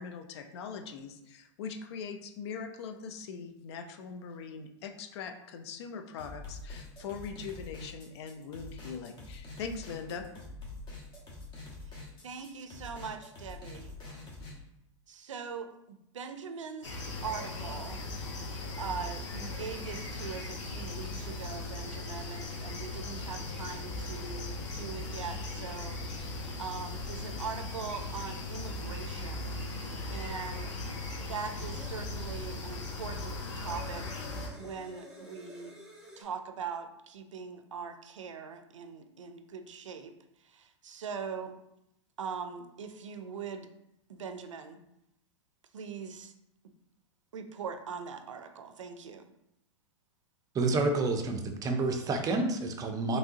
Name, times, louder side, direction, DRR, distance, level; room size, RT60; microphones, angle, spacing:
voice 1, 0.0-10.2, left 5 dB, 60° left, 6 dB, 0.5 m, -41 dB
sound 1, 6.2-14.5, left 3 dB, 30° left, 1.3 m, -46 dB
voice 2, 12.2-14.0 15.1-18.0 18.8-26.0 26.6-29.5 30.1-30.7 31.2-34.2 34.6-35.7 36.2-40.1 40.4-41.6 42.2-43.7 44.1-44.8 45.7-46.3 47.3-49.2, right 6 dB, 90° right, 8 dB, 0.4 m, -41 dB
sound 2, 16.8-34.5, left 2 dB, 80° left, 0.9 m, -38 dB
sound 3, 32.0-32.1 32.9-36.2, left 1 dB, 5° right, 1.1 m, -51 dB
voice 3, 50.5-53.2, right 3 dB, 25° right, 5 dB, 0.5 m, -29 dB
3.5 x 3.1 x 2.8 m, 0.82 s
hypercardioid pair, 110°, 16 cm